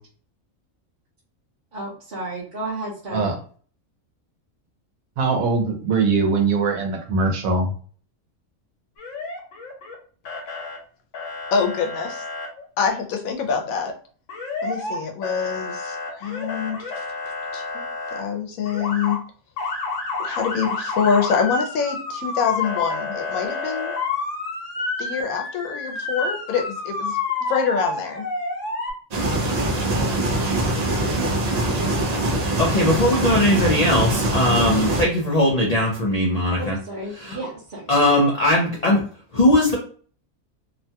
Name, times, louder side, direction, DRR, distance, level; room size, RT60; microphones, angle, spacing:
voice 1, 1.7-3.3 36.6-37.9, right 2 dB, 40° right, -7 dB, 0.9 m, -32 dB
voice 2, 5.2-7.7, right 4 dB, 85° right, 3 dB, 1.2 m, -21 dB
Motor vehicle (road) / Siren, 9.0-9.9 10.2-10.8 11.1-12.5 14.3-15.0 15.2-18.2 18.6-19.2 19.6-28.9, left 3 dB, 65° left, 1.1 m, -29 dB
voice 3, 11.5-12.2 12.6-13.9 14.6-16.9 17.5-17.8 18.1-19.2 20.2-23.9 25.0-27.2 27.5-28.3, left 6 dB, 90° left, 4 dB, 1.1 m, -25 dB
sound 1, 29.1-35.0, right 2 dB, 60° right, 0.4 m, -23 dB
voice 4, 32.6-36.8 37.2-37.4 37.9-39.0 39.3-39.8, left 1 dB, 50° left, -3 dB, 0.5 m, -19 dB
2.9 x 2.2 x 2.7 m, 0.43 s
omnidirectional pair, 1.4 m